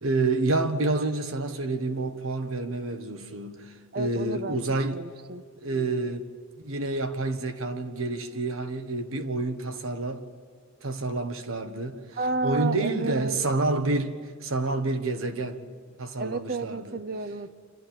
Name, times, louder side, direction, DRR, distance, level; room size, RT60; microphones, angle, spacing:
voice 1, 0.0-5.0 5.6-6.2 6.6-10.2 10.8-12.0 12.4-15.6 16.0-17.0, right 2 dB, 85° right, 1.5 m, -28 dB
voice 2, 3.9-4.6 4.9-5.4 12.2-13.4 16.2-17.5, right 3 dB, 50° right, 0.7 m, -31 dB
27.0 x 13.5 x 9.0 m
head